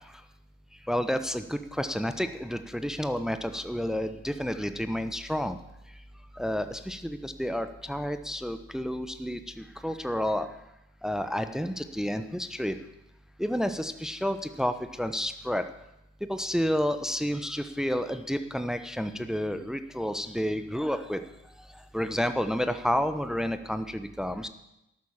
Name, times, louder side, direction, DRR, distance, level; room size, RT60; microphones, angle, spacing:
voice 1, 0.9-5.6 6.3-10.5 11.0-12.8 13.4-15.6 16.3-21.2 21.9-24.5, equal, ahead, 10 dB, 1.1 m, -30 dB
12.0 x 9.0 x 7.3 m, 0.88 s
hypercardioid pair, 40°, 34 cm